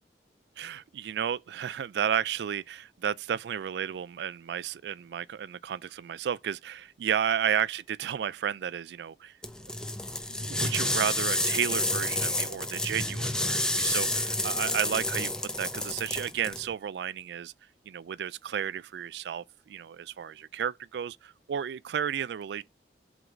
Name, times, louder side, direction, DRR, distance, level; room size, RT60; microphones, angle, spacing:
voice 1, 0.6-9.3 10.3-15.3 15.6-17.5 17.9-22.6, right 8 dB, 75° right, 0.3 m, -32 dB
sound 1, 9.4-16.6, left 1 dB, 5° left, 0.6 m, -30 dB
7.9 x 3.9 x 4.4 m
head